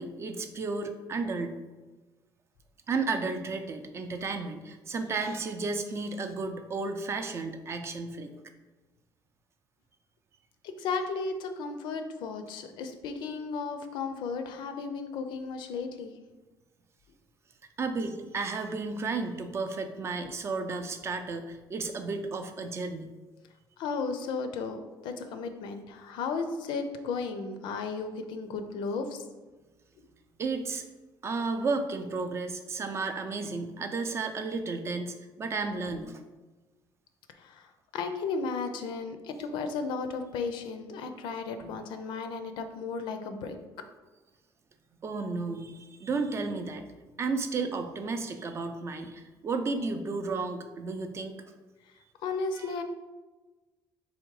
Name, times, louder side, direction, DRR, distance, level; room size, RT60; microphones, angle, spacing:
voice 1, 0.0-1.6 2.9-8.3 17.8-23.1 30.4-30.8 31.2-36.2 45.0-46.8 47.2-51.3 52.6-52.8, right 4 dB, 35° right, 7 dB, 0.4 m, -33 dB
voice 2, 10.6-16.1 23.8-29.2 37.4-43.6 52.2-52.8, left 4 dB, 80° left, 7 dB, 0.5 m, -34 dB
3.5 x 3.0 x 4.7 m, 1.2 s
cardioid pair, 130°, 8 cm